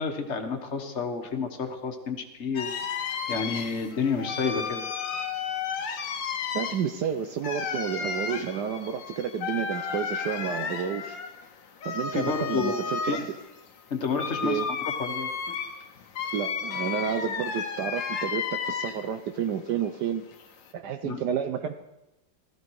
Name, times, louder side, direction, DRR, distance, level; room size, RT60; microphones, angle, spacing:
voice 1, 0.0-2.7 3.3-4.8 12.1-12.8 13.0-13.3 13.9-15.3 21.0-21.2, left 5 dB, 40° left, 6 dB, 1.5 m, -30 dB
sound 1, 2.6-19.2 19.6-20.7, left 6 dB, 80° left, 1.8 m, -33 dB
voice 2, 6.5-11.2 11.8-13.2 14.4-14.7 16.3-20.2 20.7-21.8, right 8 dB, 70° right, 8 dB, 1.2 m, -30 dB
16.0 x 13.5 x 4.7 m, 0.94 s
omnidirectional pair, 2.0 m